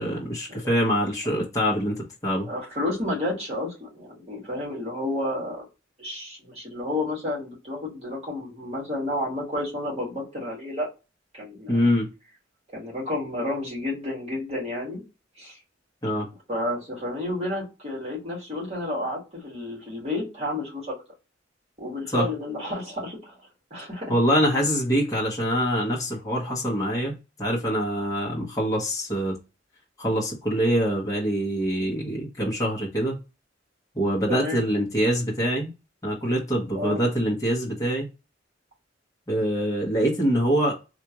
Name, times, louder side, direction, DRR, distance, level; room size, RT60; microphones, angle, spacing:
voice 1, 0.0-2.5 11.7-12.1 16.0-16.3 22.1-22.3 24.1-27.1 27.4-29.4 30.0-33.2 33.9-35.7 36.0-38.1 39.3-40.7, equal, 20° left, 1.0 m, -24 dB
voice 2, 2.4-5.7 6.0-10.9 11.3-11.8 12.7-15.0 15.4-15.6 16.5-20.9 21.8-23.4 23.7-24.2 34.3-34.6 36.7-37.0, left 1 dB, 35° right, 2.0 m, -31 dB
3.5 x 2.4 x 2.9 m
head